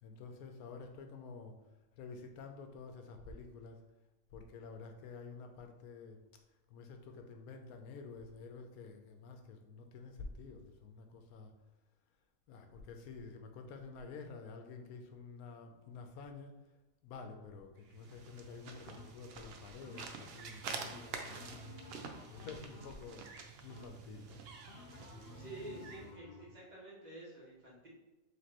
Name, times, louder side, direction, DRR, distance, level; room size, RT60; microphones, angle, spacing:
voice 1, 0.0-1.5 2.0-3.8 4.3-6.2 6.7-11.5 12.5-16.8 17.0-24.4, left 4 dB, 90° left, 5 dB, 1.1 m, -50 dB
sound 1, 17.8-26.1, right 5 dB, 65° right, 0.6 m, -48 dB
sound 2, 18.9-19.4 19.8-20.4 20.8-23.3 23.7-24.2 24.7-26.6, left 4 dB, 65° left, 0.6 m, -55 dB
voice 2, 25.3-27.9, right 1 dB, 30° right, -5 dB, 1.4 m, -49 dB
5.2 x 3.3 x 2.8 m, 1.1 s
omnidirectional pair, 1.5 m